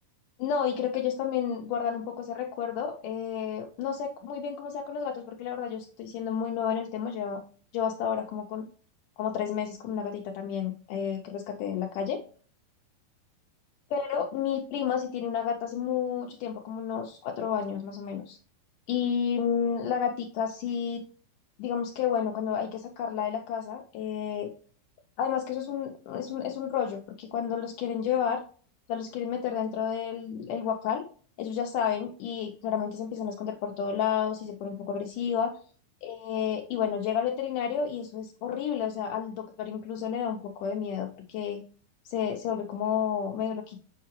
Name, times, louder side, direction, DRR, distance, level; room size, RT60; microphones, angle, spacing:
voice 1, 0.4-7.4 7.7-8.7 9.2-12.2 13.9-18.4 18.9-21.0 21.6-24.5 25.2-28.4 28.9-31.0 31.4-35.5 36.0-41.6 42.1-43.8, left 8 dB, 85° left, 3 dB, 1.9 m, -31 dB
7.4 x 4.6 x 3.0 m, 0.42 s
omnidirectional pair, 4.3 m